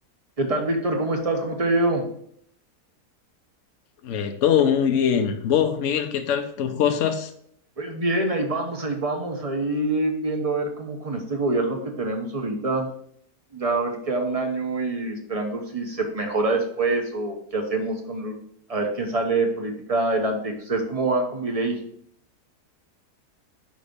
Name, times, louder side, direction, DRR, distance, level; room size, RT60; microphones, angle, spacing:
voice 1, 0.4-2.1 7.8-12.9 13.5-18.3 18.7-21.8, right 2 dB, 25° right, 3 dB, 0.9 m, -25 dB
voice 2, 4.0-7.3, left 8 dB, 60° left, 6 dB, 1.0 m, -22 dB
5.2 x 5.2 x 5.2 m, 0.67 s
omnidirectional pair, 1.7 m